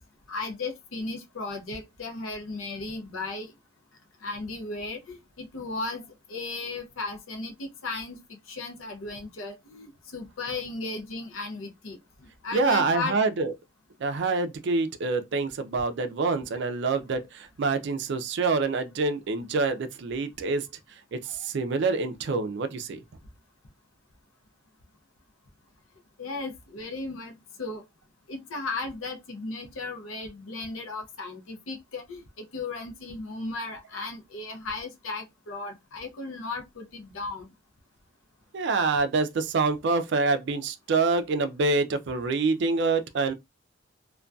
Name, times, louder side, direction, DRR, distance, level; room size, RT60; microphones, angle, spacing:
voice 1, 0.3-3.5 4.2-12.0 12.4-13.2 26.2-27.8 28.3-37.5, left 3 dB, 80° left, 0.6 m, -35 dB
voice 2, 12.5-13.5 14.0-20.7 21.1-23.0 38.5-43.3, right 3 dB, 55° right, 0.4 m, -26 dB
2.5 x 2.2 x 2.2 m
head